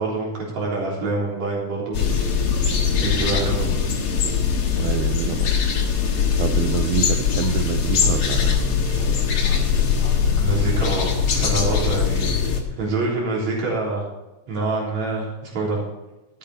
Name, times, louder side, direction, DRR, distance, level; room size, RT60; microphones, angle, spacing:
voice 1, 0.0-2.0 3.0-3.7 10.4-14.1 14.5-15.8, right 3 dB, 60° right, -4 dB, 4.9 m, -26 dB
sound 1, 1.9-12.6, left 6 dB, 55° left, 2.3 m, -21 dB
voice 2, 4.7-5.5 6.4-9.2, right 11 dB, 80° right, 8 dB, 2.0 m, -27 dB
12.5 x 8.7 x 4.3 m, 1.0 s
omnidirectional pair, 3.6 m